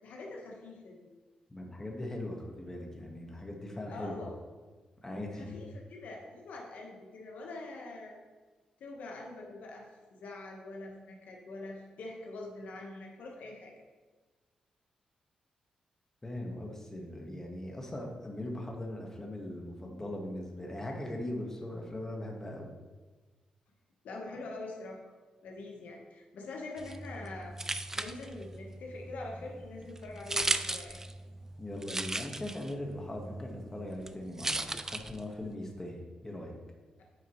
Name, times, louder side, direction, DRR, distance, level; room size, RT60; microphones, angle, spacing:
voice 1, 0.0-1.1 3.9-4.4 5.3-8.2 8.8-13.7 24.0-25.0 25.4-27.5 27.9-31.0, left 2 dB, 80° left, 0 dB, 1.1 m, -44 dB
voice 2, 1.5-4.2 5.0-5.6 16.2-22.7 31.6-36.5, left 1 dB, 15° left, 0 dB, 1.4 m, -40 dB
sound 1, 26.8-35.5, right 2 dB, 20° right, 0.4 m, -38 dB
9.0 x 4.7 x 3.1 m, 1.3 s
cardioid pair, 65°, 3 cm